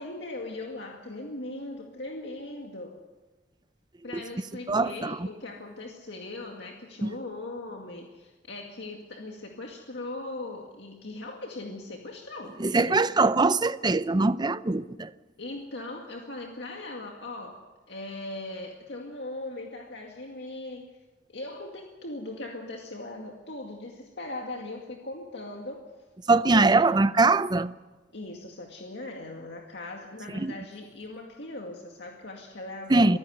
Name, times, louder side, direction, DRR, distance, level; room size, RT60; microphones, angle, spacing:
voice 1, 0.0-3.0 4.0-13.0 15.4-17.6 17.9-20.9 21.3-25.8 26.5-26.7 28.1-33.2, left 2 dB, 70° left, 2.2 m, -39 dB
voice 2, 4.7-5.2 7.0-7.1 12.6-15.1 26.3-27.7 30.3-30.5 32.9-33.2, right 3 dB, 25° right, 0.6 m, -22 dB
24.5 x 15.0 x 8.0 m
head